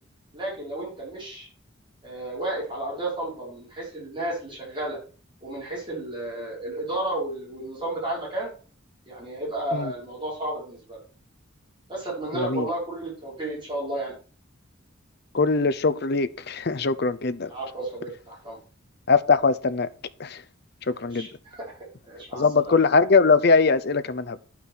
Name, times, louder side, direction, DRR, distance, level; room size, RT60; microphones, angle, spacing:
voice 1, 0.3-1.5 2.0-5.0 5.4-8.5 9.1-11.0 11.9-14.1 17.4-18.6 20.9-21.8 22.0-22.7, right 1 dB, 25° right, 5.5 m, -32 dB
voice 2, 12.3-12.7 15.3-17.5 19.1-19.9 20.2-20.4 20.9-21.3 22.3-24.4, left 4 dB, 50° left, 0.7 m, -21 dB
10.0 x 5.9 x 6.2 m
head